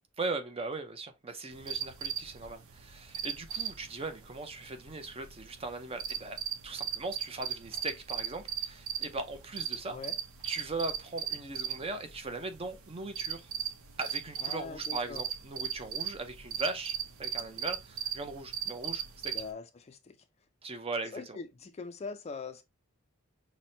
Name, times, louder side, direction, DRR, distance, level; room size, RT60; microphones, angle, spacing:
voice 1, 0.2-6.4 6.6-10.0 10.4-13.5 14.0-19.3 20.6-21.4, right 3 dB, 30° right, 0.6 m, -39 dB
sound 1, 1.5-19.5, right 9 dB, 80° right, 0.7 m, -38 dB
voice 2, 14.4-15.2 19.3-20.2 21.1-22.6, left 4 dB, 30° left, 0.4 m, -42 dB
5.9 x 2.1 x 2.6 m
head